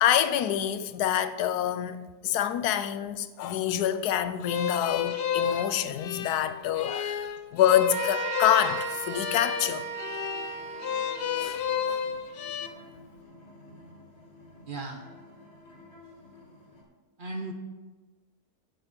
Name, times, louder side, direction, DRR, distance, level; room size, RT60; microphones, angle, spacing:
voice 1, 0.0-9.9 11.4-11.6 11.9-12.0, left 10 dB, 90° left, 1.2 m, -26 dB
sound 1, 4.4-12.7, left 8 dB, 65° left, 0.6 m, -31 dB
sound 2, 7.9-11.6, right 6 dB, 80° right, 1.6 m, -36 dB
sound 3, 8.9-16.8, left 2 dB, 45° left, 2.2 m, -52 dB
voice 2, 14.6-15.1 17.2-17.5, right 2 dB, 40° right, 0.9 m, -37 dB
8.2 x 8.2 x 6.1 m
omnidirectional pair, 1.6 m